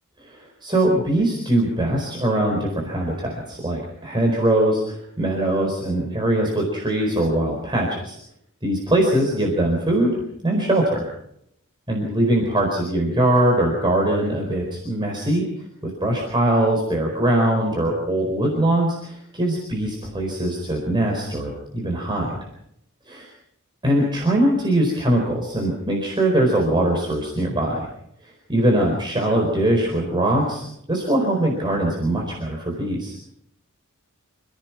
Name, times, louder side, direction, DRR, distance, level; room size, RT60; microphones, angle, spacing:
voice 1, 0.3-8.2 8.6-11.1 11.9-15.5 16.0-22.4 23.1-23.2 23.8-27.9 28.2-33.1, right 1 dB, 20° right, -1 dB, 4.4 m, -22 dB
27.5 x 17.0 x 6.0 m, 0.75 s
head